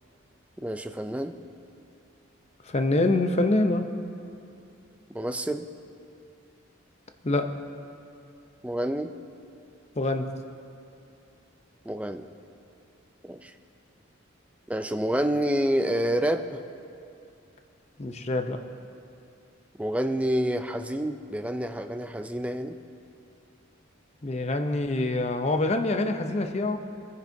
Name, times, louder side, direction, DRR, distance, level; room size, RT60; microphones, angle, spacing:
voice 1, 0.6-1.3 5.1-5.7 8.6-9.1 11.9-12.3 13.2-13.5 14.7-16.6 19.8-22.8, right 1 dB, 5° right, 8 dB, 0.4 m, -28 dB
voice 2, 2.7-3.9 7.2-7.5 10.0-10.3 18.0-18.6 24.2-26.8, left 2 dB, 30° left, 7 dB, 0.6 m, -25 dB
22.0 x 10.5 x 2.7 m, 2.6 s
head